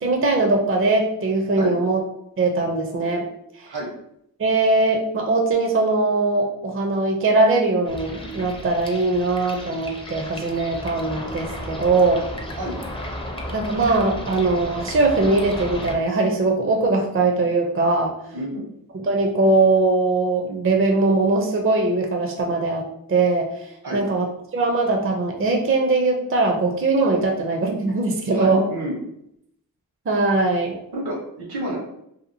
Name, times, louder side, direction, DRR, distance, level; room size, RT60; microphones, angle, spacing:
voice 1, 0.0-2.0 2.4-3.3 3.6-3.7 4.4-12.2 13.5-18.1 19.0-23.5 23.9-24.3 24.5-28.7 30.1-30.8, right 3 dB, 35° right, 1 dB, 0.5 m, -21 dB
sound 1, 7.9-16.0, left 1 dB, 15° left, 0.5 m, -34 dB
voice 2, 18.3-18.7 23.8-24.0 28.3-29.0 30.9-31.8, right 1 dB, 80° right, -2 dB, 1.1 m, -29 dB
2.8 x 2.3 x 2.6 m, 0.77 s
cardioid pair, 60°, 37 cm